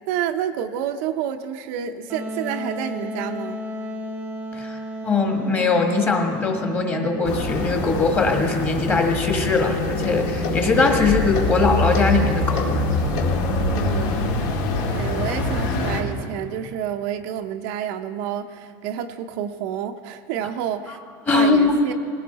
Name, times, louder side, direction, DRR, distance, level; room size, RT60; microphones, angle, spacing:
voice 1, 0.1-3.6 13.6-14.3 14.9-21.0 21.3-21.9, right 9 dB, 50° right, 6 dB, 0.6 m, -29 dB
Wind instrument woodwind instrument, 2.1-7.7, left 1 dB, 15° right, 0.9 m, -33 dB
voice 2, 5.0-12.8 20.9-21.0 21.3-21.8, left 3 dB, 20° left, 3 dB, 1.6 m, -21 dB
sound 1, 7.2-16.0, left 2 dB, 65° left, 2.1 m, -24 dB
20.0 x 16.0 x 4.1 m, 2.2 s
supercardioid pair, 170°, 11 cm